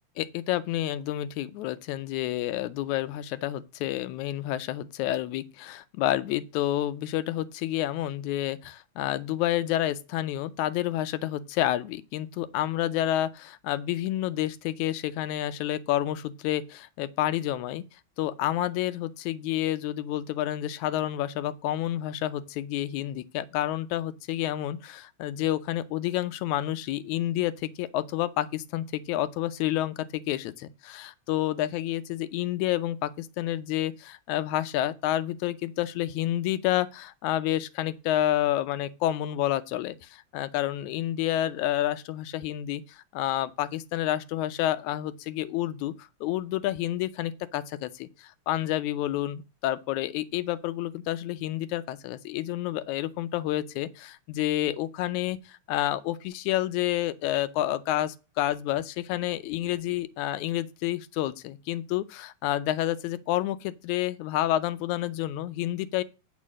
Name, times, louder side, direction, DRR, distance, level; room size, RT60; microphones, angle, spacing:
voice 1, 0.2-17.8 18.2-66.0, left 13 dB, 85° left, 2.0 m, -29 dB
8.3 x 4.8 x 7.3 m
omnidirectional pair, 3.3 m